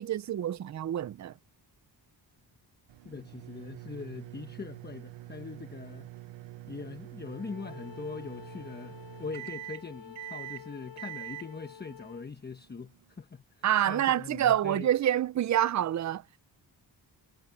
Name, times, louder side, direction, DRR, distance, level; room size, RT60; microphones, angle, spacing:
voice 1, 0.0-1.3 13.6-16.2, right 11 dB, 40° right, 0.5 m, -27 dB
sound 1, 2.9-13.2, right 18 dB, 80° right, 1.0 m, -45 dB
voice 2, 3.0-6.1 6.7-14.9, left 4 dB, 20° left, 1.1 m, -42 dB
Bowed string instrument, 7.2-12.3, left 8 dB, 70° left, 3.3 m, -49 dB
wide cardioid pair, 140°, 45 cm